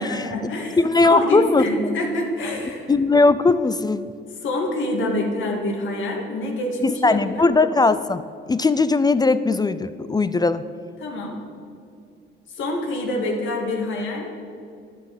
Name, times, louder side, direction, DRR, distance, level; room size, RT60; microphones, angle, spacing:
voice 1, 0.0-2.9 4.4-7.5 11.0-11.4 12.5-14.3, left 1 dB, 75° left, 1 dB, 2.2 m, -26 dB
voice 2, 0.8-1.7 2.9-4.1 6.8-8.2 8.5-10.6, left 3 dB, 20° left, 13 dB, 0.4 m, -19 dB
10.5 x 9.4 x 6.4 m, 2.4 s
cardioid pair, 90°, 20 cm